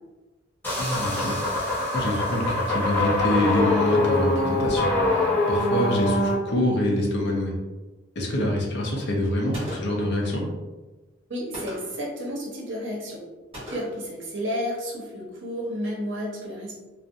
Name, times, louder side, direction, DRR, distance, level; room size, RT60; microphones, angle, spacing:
sound 1, 0.6-6.3, left 2 dB, 10° left, 0.6 m, -24 dB
voice 1, 0.8-7.5 8.2-10.4, left 1 dB, 55° left, -1 dB, 0.5 m, -26 dB
Gunshot gunfire, 9.5-10.1 11.5-12.1 13.5-14.1, equal, 30° right, 1.1 m, -38 dB
voice 2, 11.3-13.2 13.7-16.7, equal, 65° right, -3 dB, 0.7 m, -31 dB
2.4 x 2.0 x 2.6 m, 1.2 s
head